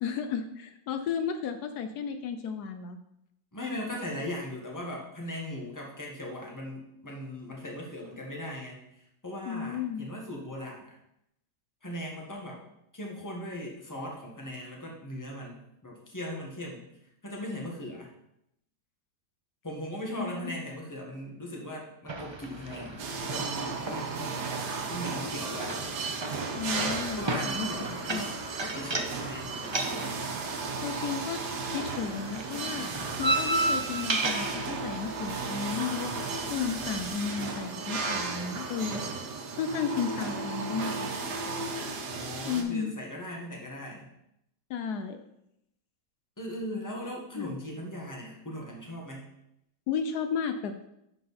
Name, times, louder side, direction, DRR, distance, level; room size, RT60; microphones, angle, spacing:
voice 1, 0.0-3.0 9.5-10.1 20.2-20.6 23.9-24.0 26.5-27.7 28.1-28.3 30.8-31.4 31.7-39.0 39.5-41.1 41.4-41.9 42.5-42.9 44.7-45.2 47.4-47.5 49.9-50.7, left 6 dB, 80° left, 8 dB, 1.2 m, -33 dB
voice 2, 3.5-11.0 11.8-12.6 12.9-16.8 17.2-18.1 19.6-24.5 24.9-25.8 27.2-30.2 42.0-44.1 46.4-49.3, left 1 dB, 10° left, -1 dB, 1.5 m, -39 dB
sound 1, 22.1-37.1, right 2 dB, 45° right, 0.3 m, -35 dB
sound 2, 23.0-42.6, right 4 dB, 85° right, 1.7 m, -35 dB
10.5 x 4.8 x 4.2 m, 0.80 s
omnidirectional pair, 1.7 m